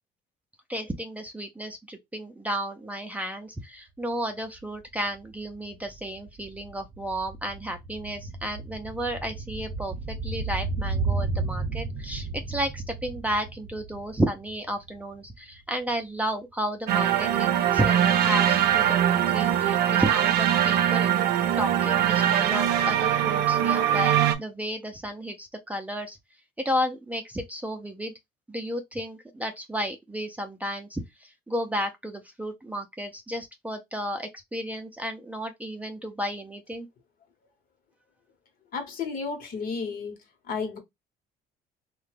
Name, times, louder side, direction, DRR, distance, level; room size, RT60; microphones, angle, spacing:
voice 1, 0.7-21.1 21.6-26.2 26.6-28.1 28.5-36.9, equal, 10° right, 0.4 m, -32 dB
sound 1, 4.6-4.7 4.9-15.3 15.5-15.6, right 3 dB, 35° right, 0.7 m, -33 dB
sound 2, 16.9-24.4, right 10 dB, 70° right, 0.5 m, -22 dB
voice 2, 38.7-40.2 40.5-40.8, left 5 dB, 60° left, 1.0 m, -32 dB
2.8 x 2.2 x 3.2 m
cardioid pair, 110°, 17 cm